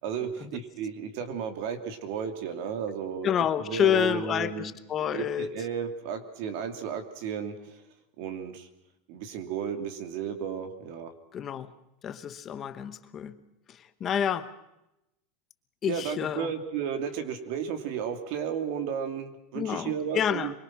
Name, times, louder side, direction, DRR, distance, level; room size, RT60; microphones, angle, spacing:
voice 1, 0.0-3.3 3.6-4.7 5.1-7.8 8.2-8.7 9.1-11.1 15.9-20.5, right 7 dB, 50° right, 8 dB, 2.8 m, -33 dB
voice 2, 3.2-5.6 11.3-11.7 12.0-13.4 13.7-14.5 15.8-16.5 19.5-20.5, left 9 dB, 20° left, 12 dB, 1.0 m, -29 dB
24.5 x 23.0 x 6.1 m, 0.89 s
supercardioid pair, 175°, 0 cm